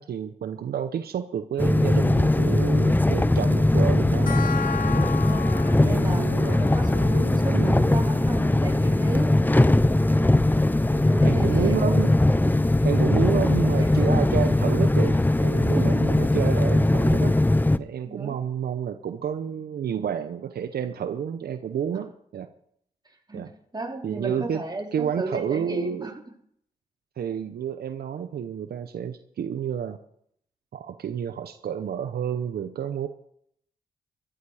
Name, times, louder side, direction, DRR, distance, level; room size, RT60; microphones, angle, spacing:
voice 1, 0.0-4.3 4.9-5.1 5.8-6.6 7.5-7.8 11.2-12.1 12.8-17.4 17.8-22.5 23.3-23.5 24.0-24.6 24.9-26.1 27.2-30.0 30.7-33.1, right 8 dB, 80° right, 9 dB, 0.7 m, -30 dB
sound 1, 1.6-17.8, left 1 dB, 10° left, 0.6 m, -20 dB
sound 2, 4.3-15.2, left 6 dB, 65° left, 0.7 m, -39 dB
voice 2, 5.3-9.4 10.9-11.9 13.2-14.4 15.7-15.9 18.1-18.4 23.3-26.1, right 2 dB, 25° right, 0 dB, 3.7 m, -34 dB
14.0 x 12.5 x 4.9 m, 0.68 s
cardioid pair, 50°, 16 cm